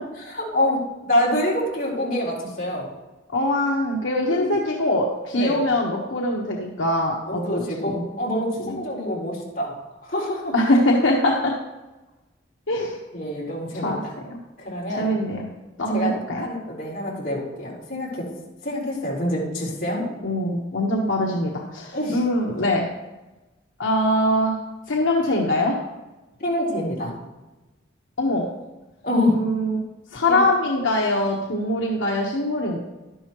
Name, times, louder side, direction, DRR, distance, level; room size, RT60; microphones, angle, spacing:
voice 1, 0.3-2.8 4.3-4.5 5.3-5.6 7.3-9.8 10.0-10.5 13.1-14.2 14.6-15.1 15.9-18.3 18.6-20.1 21.9-22.2 26.4-27.1 29.0-29.4 30.3-30.4, left 1 dB, 45° left, -5 dB, 4.1 m, -26 dB
voice 2, 3.3-8.0 8.6-8.8 10.5-11.5 12.7-13.0 13.7-14.0 15.0-15.4 15.8-16.5 20.2-22.9 23.8-24.6 24.9-25.8 28.2-28.4 29.3-29.8 30.1-32.8, left 1 dB, 80° left, -2 dB, 1.3 m, -22 dB
12.0 x 10.5 x 3.1 m, 1.1 s
head